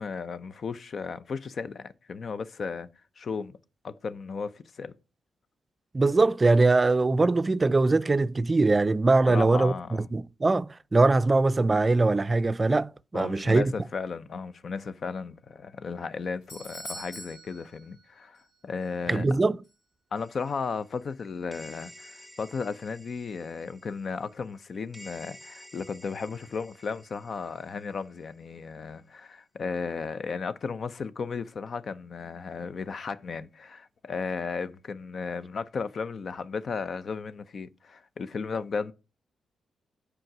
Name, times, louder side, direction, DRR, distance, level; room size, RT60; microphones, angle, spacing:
voice 1, 0.0-2.9 3.2-3.6 3.8-5.0 9.2-10.1 13.1-19.4 20.1-38.9, left 5 dB, 55° left, 0.6 m, -35 dB
voice 2, 5.9-13.7 19.1-19.6, right 3 dB, 30° right, 0.4 m, -22 dB
Doorbell, 16.0-18.5 18.8-18.9 19.6-19.7, right 1 dB, 85° left, 3.7 m, -44 dB
sound 1, 20.2-28.3, equal, 5° left, 1.8 m, -52 dB
7.7 x 4.9 x 5.9 m
supercardioid pair, 50°, 0 cm